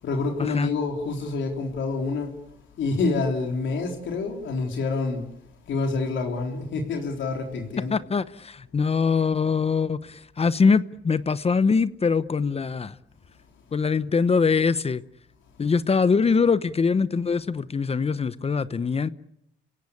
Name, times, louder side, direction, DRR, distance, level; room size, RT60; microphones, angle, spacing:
voice 1, 0.0-2.3 2.8-5.3 5.7-8.0, left 3 dB, 70° left, 3.9 m, -27 dB
voice 2, 7.9-13.0 13.7-15.0 15.6-19.1, left 5 dB, 30° left, 0.9 m, -23 dB
29.5 x 17.0 x 8.6 m
cardioid pair, 90°, 20 cm